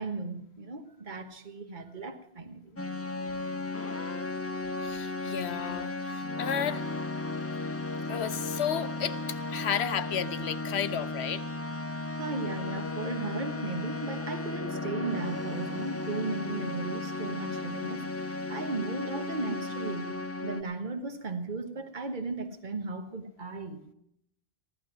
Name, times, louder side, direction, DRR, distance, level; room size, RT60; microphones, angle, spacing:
voice 1, 0.0-2.8 5.2-5.4 12.1-23.9, right 3 dB, 45° right, 7 dB, 1.4 m, -36 dB
sound 1, 2.8-20.6, left 2 dB, 20° left, 0.5 m, -35 dB
voice 2, 4.8-6.8 8.1-11.4, left 8 dB, 80° left, 12 dB, 1.0 m, -33 dB
15.0 x 11.5 x 5.9 m, 0.77 s
omnidirectional pair, 1.1 m